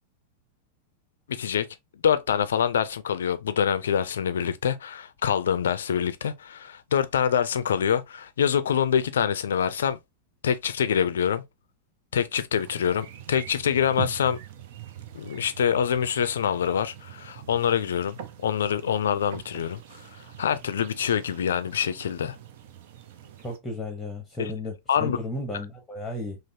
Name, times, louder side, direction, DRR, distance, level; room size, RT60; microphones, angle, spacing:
voice 1, 1.3-1.7 2.0-10.0 10.4-11.4 12.1-14.4 15.1-19.8 20.4-22.3 24.4-24.5 24.9-25.2, left 8 dB, 65° left, 0.4 m, -25 dB
sound 1, 12.6-23.6, right 11 dB, 55° right, 0.5 m, -43 dB
voice 2, 23.4-26.4, left 1 dB, 10° left, 0.9 m, -34 dB
5.1 x 2.0 x 2.7 m
figure-of-eight pair, 90°, 0 cm